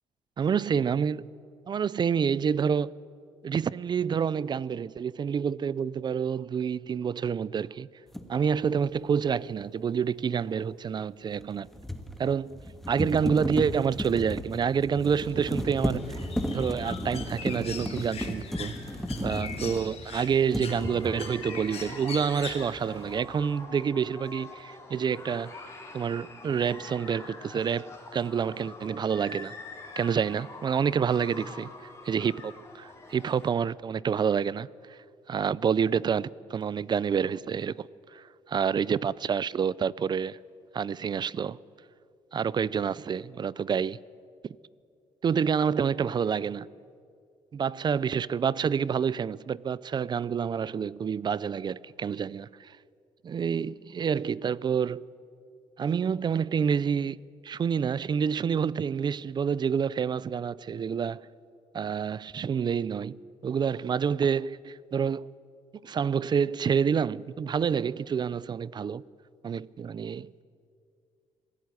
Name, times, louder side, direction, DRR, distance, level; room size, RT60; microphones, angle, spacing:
voice 1, 0.4-1.3 1.7-2.9 3.4-7.9 8.3-11.7 12.2-12.6 12.9-18.8 19.2-25.6 25.9-29.5 30.0-31.7 32.0-35.0 35.3-40.4 40.7-41.6 42.3-44.0 44.4-44.6 45.2-46.7 47.5-52.8 53.2-55.1 55.8-61.3 61.7-63.2 63.4-65.3 65.8-69.0 69.4-70.4, right 7 dB, 40° right, 0.5 m, -28 dB
sound 1, 8.1-8.3 11.4-20.1 20.5-21.3, equal, ahead, 1.7 m, -34 dB
Bird, 15.1-23.2, left 6 dB, 60° left, 3.9 m, -42 dB
sound 2, 20.7-33.5, left 3 dB, 25° left, 4.3 m, -45 dB
26.0 x 17.0 x 9.7 m
cardioid pair, 115°, 12 cm